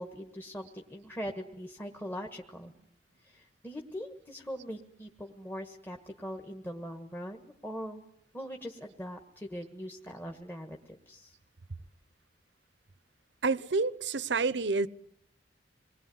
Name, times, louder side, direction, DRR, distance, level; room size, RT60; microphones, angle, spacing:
voice 1, 0.0-2.7 3.2-8.0 8.3-10.8 11.1-11.4, equal, 10° left, 1.6 m, -41 dB
voice 2, 13.4-14.9, right 3 dB, 80° right, 0.9 m, -28 dB
26.5 x 21.0 x 9.5 m
head